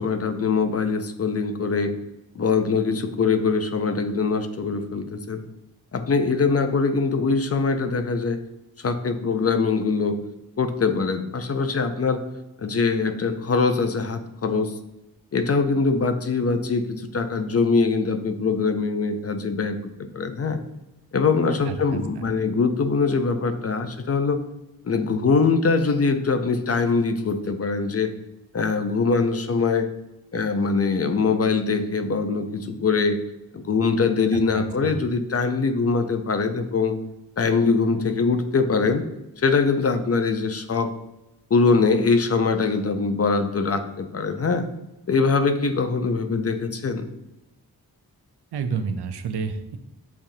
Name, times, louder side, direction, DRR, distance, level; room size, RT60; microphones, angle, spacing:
voice 1, 0.0-1.9 2.4-5.4 5.9-8.4 8.8-10.2 10.6-12.2 12.6-14.7 15.3-19.8 20.1-20.6 21.1-24.4 24.8-28.1 28.5-29.9 30.3-33.2 33.5-37.0 37.4-39.0 39.4-40.9 41.5-44.7 45.1-47.0, left 4 dB, 40° left, 8 dB, 0.5 m, -22 dB
voice 2, 21.7-22.0 34.5-35.0 48.5-49.8, right 5 dB, 85° right, 8 dB, 0.5 m, -29 dB
7.1 x 2.4 x 2.7 m, 0.91 s
cardioid pair, 55°, 39 cm